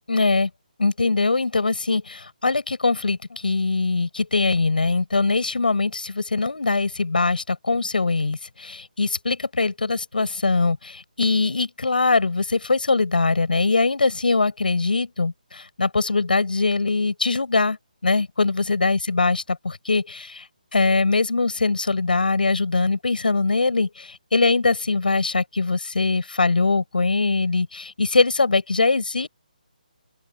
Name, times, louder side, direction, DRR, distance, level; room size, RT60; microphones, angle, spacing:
voice 1, 0.1-0.5 0.8-17.8 18.0-20.5 20.7-29.3, left 3 dB, 85° left, 7.1 m, -22 dB
open air
hypercardioid pair, 165°, 5 cm